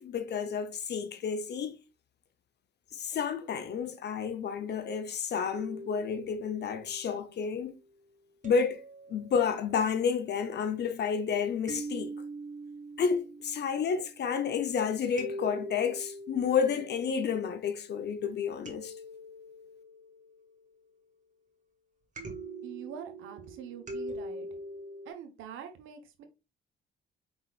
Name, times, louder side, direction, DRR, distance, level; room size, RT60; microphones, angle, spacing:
voice 1, 0.0-1.8 2.9-7.7 8.4-8.8 9.1-12.1 13.0-18.9, left 6 dB, 60° left, 0.8 m, -30 dB
sound 1, 5.6-7.6 8.4-9.9 11.7-14.6 15.2-17.8 18.6-20.9 22.2-25.1, right 1 dB, 40° right, 1.6 m, -43 dB
voice 2, 22.6-24.5 25.1-26.3, right 8 dB, 90° right, 1.0 m, -44 dB
5.0 x 4.0 x 2.4 m
cardioid pair, 90°, 20 cm